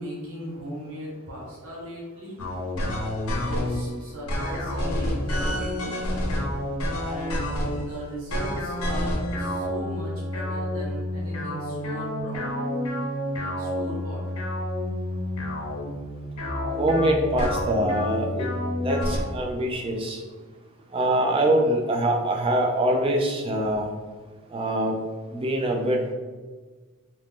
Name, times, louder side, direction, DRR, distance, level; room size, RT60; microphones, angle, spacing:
voice 1, 0.0-2.4 3.4-6.2 7.0-12.4 13.3-14.2, equal, 65° right, -5 dB, 0.9 m, -37 dB
sound 1, 2.4-3.8 4.3-7.9 8.3-19.2, left 1 dB, 70° left, 0.7 m, -29 dB
voice 2, 16.8-18.5 18.8-20.2 20.9-23.9 24.5-25.0 25.3-26.1, right 1 dB, 25° right, 2 dB, 0.3 m, -24 dB
2.9 x 2.5 x 3.5 m, 1.4 s
head